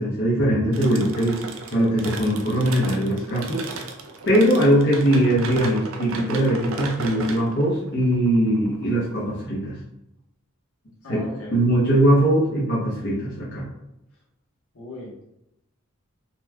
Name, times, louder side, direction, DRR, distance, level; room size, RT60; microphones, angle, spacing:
voice 1, 0.0-1.4 1.7-3.6 4.3-9.7 11.1-11.2 11.5-13.7, right 1 dB, 55° left, -8 dB, 1.0 m, -21 dB
sound 1, 0.7-9.4, right 4 dB, 70° right, 0.5 m, -36 dB
voice 2, 11.0-11.6 14.7-15.3, left 1 dB, 75° left, -4 dB, 1.2 m, -38 dB
4.0 x 2.9 x 2.3 m, 0.86 s
head